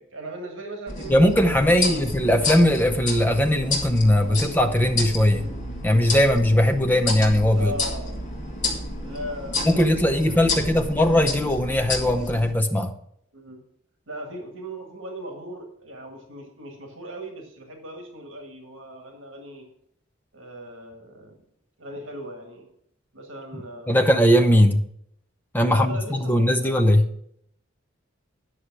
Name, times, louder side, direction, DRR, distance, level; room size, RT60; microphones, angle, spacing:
voice 1, 0.0-2.2 7.6-8.1 9.0-10.3 10.7-10.9 13.3-13.6 14.1-19.7 20.3-21.4 21.8-22.7 23.1-24.0 25.7-26.8, right 1 dB, 75° right, 3 dB, 1.8 m, -38 dB
sound 1, 0.9-12.5, left 2 dB, 40° left, 2.0 m, -30 dB
voice 2, 1.1-5.5 5.8-7.7 9.6-12.9 23.9-24.8 25.5-27.0, left 1 dB, 10° left, 5 dB, 0.7 m, -19 dB
9.9 x 6.3 x 6.0 m, 0.70 s
head